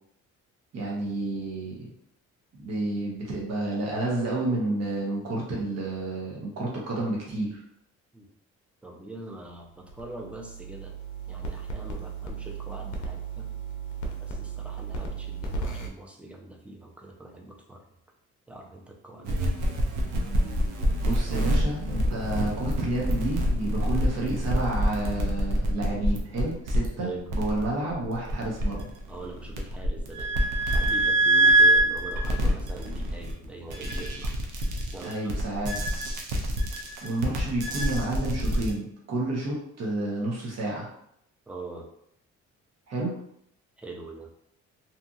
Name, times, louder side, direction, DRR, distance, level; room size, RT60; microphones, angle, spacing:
voice 1, 0.7-1.9 2.5-7.6 21.0-28.9 35.0-36.0 37.0-40.9 42.9-43.1, right 2 dB, 60° right, -3 dB, 0.9 m, -30 dB
voice 2, 8.8-10.9 11.3-13.5 14.2-17.8 18.5-19.8 27.0-27.3 29.1-34.4 34.8-35.6 41.5-41.9 43.8-44.3, right 2 dB, 5° right, 0 dB, 0.5 m, -42 dB
Phone Circuitry, 9.7-15.9, right 4 dB, 70° left, 0.6 m, -35 dB
sound 1, 19.3-38.7, right 1 dB, 85° right, 0.6 m, -25 dB
2.8 x 2.5 x 2.4 m, 0.73 s
cardioid pair, 90°, 30 cm